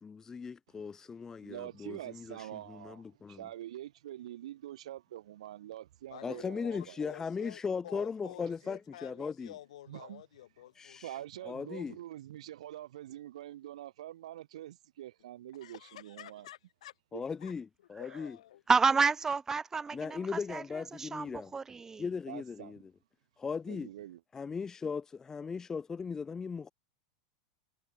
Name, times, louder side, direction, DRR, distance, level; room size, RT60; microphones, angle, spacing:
voice 1, 0.0-3.4 6.2-9.5 10.8-11.2 11.4-12.0 17.1-18.4 19.9-21.5 22.0-22.9 23.4-23.9 24.3-26.7, left 5 dB, 15° left, 0.7 m, -38 dB
voice 2, 1.4-7.0 9.9-10.2 11.0-16.5 17.1-17.2 22.3-22.8 23.7-24.2, right 13 dB, 85° right, 2.5 m, -45 dB
voice 3, 6.1-11.5 15.6-16.9 17.4-17.5 18.0-18.6, left 13 dB, 85° left, 7.6 m, -50 dB
voice 4, 18.7-20.6 21.0-22.0, right 5 dB, 15° right, 1.8 m, -29 dB
supercardioid pair, 135°, 3 cm